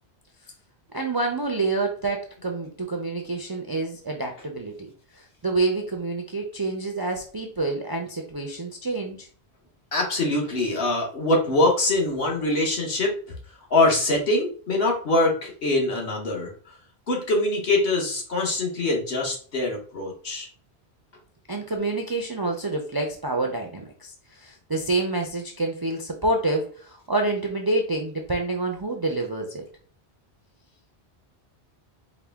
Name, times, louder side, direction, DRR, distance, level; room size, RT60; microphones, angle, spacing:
voice 1, 0.9-4.9 5.2-9.3 21.5-29.6, right 2 dB, 35° right, 2 dB, 0.4 m, -27 dB
voice 2, 9.9-13.1 13.7-16.5 17.1-20.5, left 2 dB, 65° left, 0 dB, 1.4 m, -23 dB
4.7 x 2.1 x 3.4 m, 0.43 s
omnidirectional pair, 1.1 m